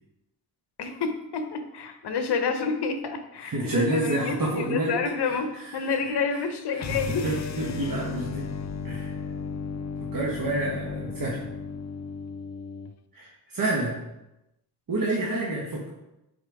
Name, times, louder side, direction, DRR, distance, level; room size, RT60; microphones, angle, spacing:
voice 1, 0.8-7.3 15.2-15.4, left 5 dB, 65° left, 7 dB, 1.0 m, -29 dB
voice 2, 3.4-5.0 5.5-6.2 6.7-8.4 8.8-9.1 10.1-11.4 13.1-14.0 14.9-15.9, right 2 dB, 50° right, -3 dB, 1.4 m, -28 dB
sound 1, 6.8-12.9, left 6 dB, 40° left, 0.5 m, -35 dB
7.9 x 4.3 x 3.5 m, 0.92 s
cardioid pair, 75°, 43 cm